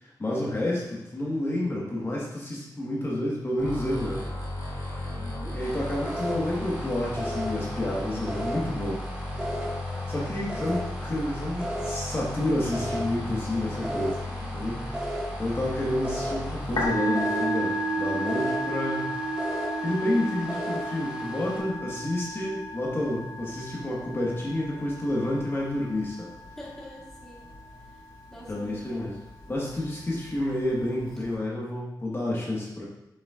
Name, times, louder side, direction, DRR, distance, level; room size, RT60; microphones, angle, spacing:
voice 1, 0.2-4.2 5.5-9.0 10.1-14.2 14.5-14.7 15.4-19.1 19.8-26.3 28.5-29.1 29.5-32.8, left 1 dB, 30° left, -4 dB, 1.4 m, -29 dB
sound 1, 3.6-16.8, left 1 dB, 70° left, 1.6 m, -35 dB
voice 2, 5.1-5.6 10.4-10.7 14.3-15.0 26.6-27.5 28.3-29.1, left 1 dB, 5° left, -5 dB, 1.4 m, -45 dB
Systems Faliure Alert, 5.6-21.6, equal, 15° right, 1.0 m, -37 dB
Musical instrument, 16.6-31.3, right 1 dB, 85° left, 1.8 m, -33 dB
6.9 x 6.2 x 2.4 m, 0.90 s
wide cardioid pair, 135°, 8 cm